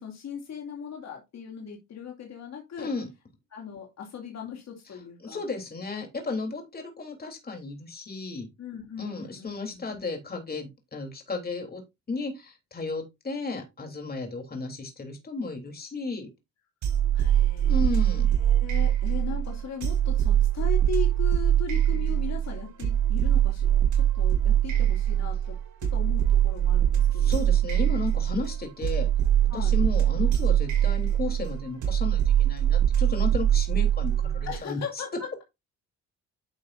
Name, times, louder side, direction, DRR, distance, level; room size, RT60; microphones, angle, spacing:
voice 1, 0.0-2.9 3.5-5.4 8.6-10.0 17.1-25.6 25.9-27.5 29.5-29.8 34.5-35.4, left 6 dB, 60° left, 2.7 m, -38 dB
voice 2, 2.8-3.1 5.2-8.5 9.0-11.8 12.1-16.3 17.6-18.3 27.1-29.1 29.5-35.0, left 3 dB, 30° left, 3.5 m, -34 dB
sound 1, 16.8-34.6, right 10 dB, 75° right, 4.8 m, -23 dB
10.5 x 6.4 x 2.6 m
cardioid pair, 90°, 30 cm